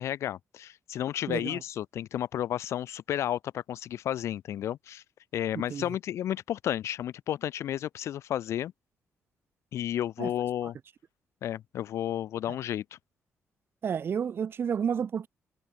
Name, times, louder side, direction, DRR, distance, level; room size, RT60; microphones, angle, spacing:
voice 1, 0.0-5.0 5.3-8.7 9.7-10.8 11.4-13.0, left 11 dB, 75° left, 4.5 m, -32 dB
voice 2, 1.3-1.6 5.5-5.9 10.2-10.3 13.8-15.3, right 7 dB, 55° right, 2.9 m, -31 dB
cardioid pair, 95°, 5 cm